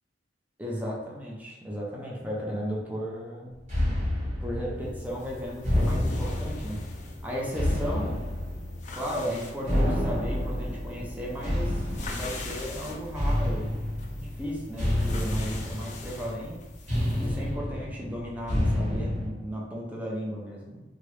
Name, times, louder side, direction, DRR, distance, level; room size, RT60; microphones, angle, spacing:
voice 1, 0.6-3.6 4.4-6.8 7.2-8.2 8.9-11.9 12.1-13.7 14.2-16.6 17.2-20.8, equal, 10° right, -4 dB, 0.6 m, -35 dB
sound 1, 3.7-19.3, left 1 dB, 40° right, 1.3 m, -29 dB
sound 2, 4.9-17.5, left 3 dB, 40° left, 0.4 m, -45 dB
2.9 x 2.4 x 3.1 m, 1.1 s
head